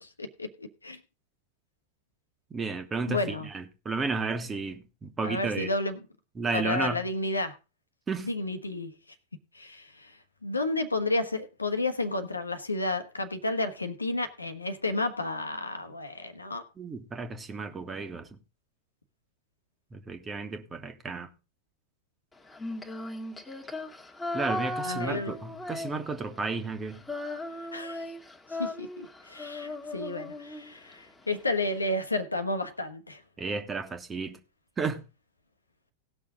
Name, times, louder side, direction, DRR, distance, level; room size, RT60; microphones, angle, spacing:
voice 1, 0.2-1.0 3.1-3.5 5.2-6.0 6.5-7.5 8.2-8.9 9.5-16.6 24.8-25.3 27.7-28.0 28.6-33.2, left 2 dB, 80° left, 1.3 m, -31 dB
voice 2, 2.5-5.7 6.4-7.0 8.1-8.3 16.8-18.3 19.9-21.3 24.3-27.0 33.4-34.4 34.8-35.0, right 4 dB, 20° right, 1.5 m, -33 dB
Female singing, 22.5-26.4 26.7-30.9, left 2 dB, 10° left, 1.8 m, -37 dB
18.5 x 6.3 x 3.8 m
figure-of-eight pair, 90°, 0 cm